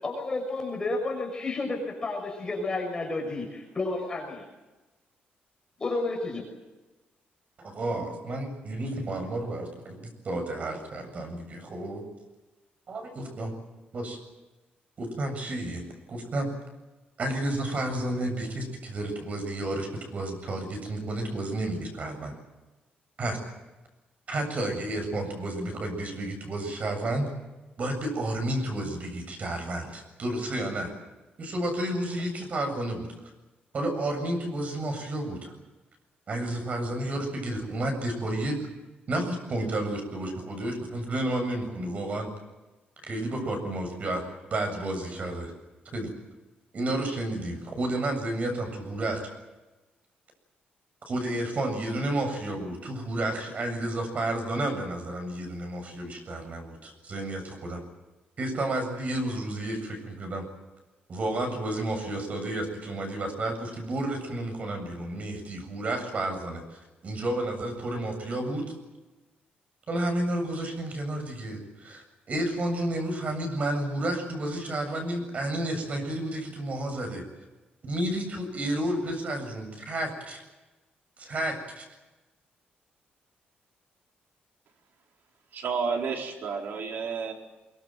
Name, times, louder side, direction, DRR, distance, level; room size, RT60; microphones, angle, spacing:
voice 1, 0.0-4.4 5.8-6.4, left 2 dB, 20° left, 1 dB, 6.3 m, -31 dB
voice 2, 7.6-12.0 12.9-13.5 13.9-14.2 15.0-16.5 17.2-22.3 23.2-23.4 24.3-27.3 27.8-30.9 31.4-33.1 33.7-35.5 36.3-38.6 39.1-42.3 43.1-45.5 45.9-46.1 46.7-49.3 51.1-57.8 58.4-60.4 61.1-68.7 69.9-77.2 77.8-80.4 81.2-81.8, right 1 dB, 40° right, 5 dB, 7.6 m, -31 dB
voice 3, 85.5-87.3, right 5 dB, 65° right, 1 dB, 4.8 m, -31 dB
24.5 x 23.5 x 7.7 m, 1.1 s
cardioid pair, 135°, 4 cm